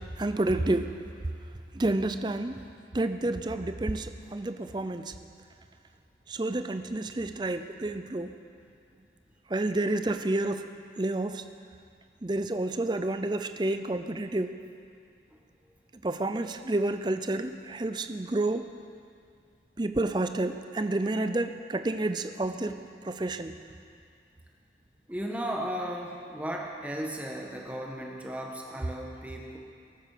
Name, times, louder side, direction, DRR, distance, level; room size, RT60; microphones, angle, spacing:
voice 1, 0.2-1.0 1.7-2.6 2.9-5.1 6.3-8.4 9.5-10.7 11.0-11.5 12.2-14.6 16.0-18.7 19.8-23.6, right 2 dB, 25° right, 9 dB, 0.5 m, -30 dB
voice 2, 25.1-29.6, equal, 10° right, 0 dB, 1.4 m, -35 dB
19.0 x 8.5 x 6.7 m, 2.4 s
head